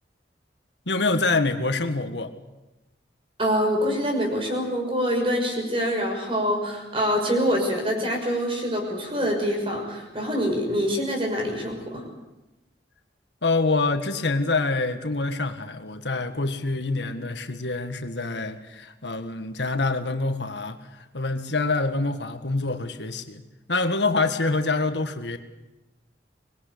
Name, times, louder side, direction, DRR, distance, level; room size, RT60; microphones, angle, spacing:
voice 1, 0.9-2.3 13.4-20.8 21.1-23.4 23.7-25.4, left 3 dB, 80° left, 7 dB, 1.8 m, -26 dB
voice 2, 3.4-12.0, equal, 30° right, 2 dB, 6.1 m, -25 dB
25.0 x 20.5 x 8.5 m, 1.0 s
head